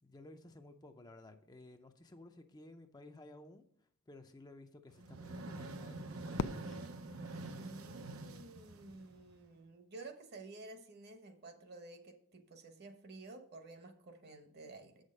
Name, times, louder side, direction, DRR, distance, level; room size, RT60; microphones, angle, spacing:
voice 1, 0.0-6.8, left 2 dB, 20° left, 6 dB, 0.5 m, -56 dB
sound 1, 4.9-9.5, right 2 dB, 80° right, 0.8 m, -46 dB
Fireworks, 6.3-8.6, left 6 dB, 85° left, 0.4 m, -43 dB
voice 2, 7.6-15.0, right 2 dB, 50° right, 7 dB, 1.1 m, -52 dB
8.0 x 6.4 x 5.3 m, 0.66 s
head